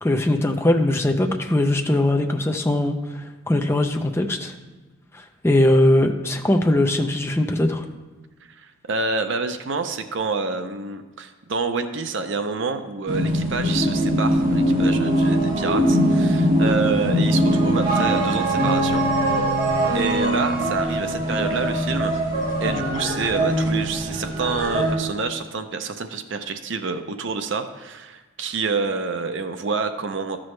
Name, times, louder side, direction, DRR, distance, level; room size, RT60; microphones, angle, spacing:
voice 1, 0.0-4.5 5.1-7.8, left 1 dB, 10° left, 4 dB, 0.5 m, -20 dB
voice 2, 8.6-19.1 19.9-22.2 22.6-30.4, right 4 dB, 60° right, 8 dB, 0.5 m, -27 dB
sound 1, 13.1-24.9, right 1 dB, 40° right, 1.5 m, -21 dB
13.0 x 6.1 x 3.2 m, 1.3 s
head